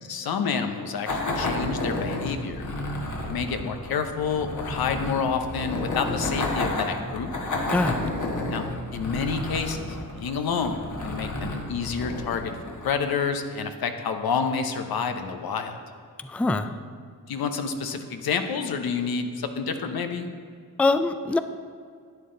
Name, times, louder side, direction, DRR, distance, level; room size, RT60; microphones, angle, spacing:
voice 1, 0.0-2.7 3.0-7.3 8.5-12.6 12.8-15.8 17.3-20.3, left 5 dB, 80° left, 7 dB, 0.9 m, -29 dB
sound 1, 1.1-13.2, left 2 dB, 55° left, 1.5 m, -31 dB
voice 2, 7.7-8.0 16.2-16.7 20.8-21.4, left 3 dB, 5° left, 10 dB, 0.3 m, -23 dB
11.0 x 8.8 x 3.8 m, 2.1 s
cardioid pair, 80°, 36 cm